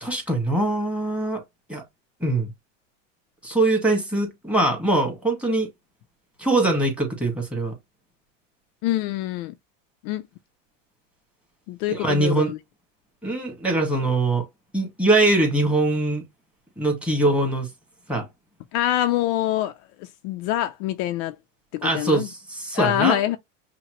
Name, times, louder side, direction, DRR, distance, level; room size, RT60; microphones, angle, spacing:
voice 1, 0.0-1.4 1.7-1.8 2.2-2.5 3.4-5.7 6.4-7.7 11.9-12.5 13.2-14.5 14.7-16.2 16.8-17.7 18.1-18.3 21.8-23.2, right 2 dB, 5° right, 1.6 m, -22 dB
voice 2, 8.8-9.5 10.0-10.2 11.7-12.6 18.7-19.7 20.0-21.4 21.7-22.3 22.7-23.4, left 13 dB, 55° left, 0.5 m, -25 dB
5.7 x 2.1 x 3.0 m
supercardioid pair, 125°, 37 cm